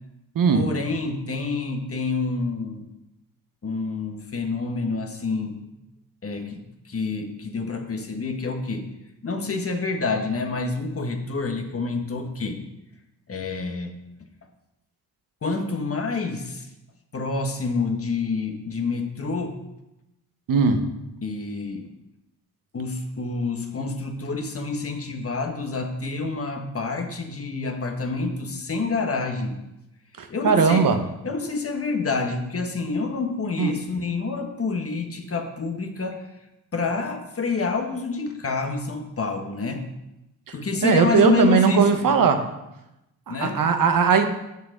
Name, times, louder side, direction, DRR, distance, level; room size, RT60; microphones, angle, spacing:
voice 1, 0.5-2.9 3.6-5.6 6.2-8.9 9.2-12.6 13.3-14.0 15.4-16.7 17.1-19.6 21.2-21.9 22.7-29.6 30.3-30.9 31.2-36.3 36.7-39.9 40.5-42.0 43.3-43.7, left 4 dB, 35° left, 4 dB, 1.4 m, -28 dB
voice 2, 20.5-20.8 30.2-31.0 33.6-33.7 40.8-42.4 43.3-44.3, right 5 dB, 60° right, 7 dB, 1.1 m, -19 dB
7.2 x 5.9 x 6.6 m, 0.92 s
cardioid pair, 70°, 37 cm